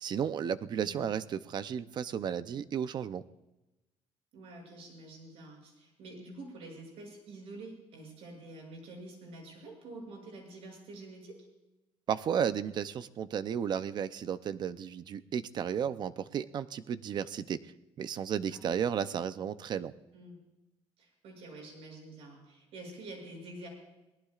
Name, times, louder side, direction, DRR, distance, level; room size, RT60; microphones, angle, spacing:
voice 1, 0.0-3.2 12.1-17.7 18.0-19.9, right 8 dB, 45° right, 13 dB, 0.6 m, -33 dB
voice 2, 0.7-1.1 4.3-11.4 18.5-18.7 20.1-20.4 21.0-23.7, right 2 dB, 80° right, 1 dB, 7.1 m, -47 dB
23.5 x 18.5 x 2.5 m, 1.0 s
cardioid pair, 170°, 10 cm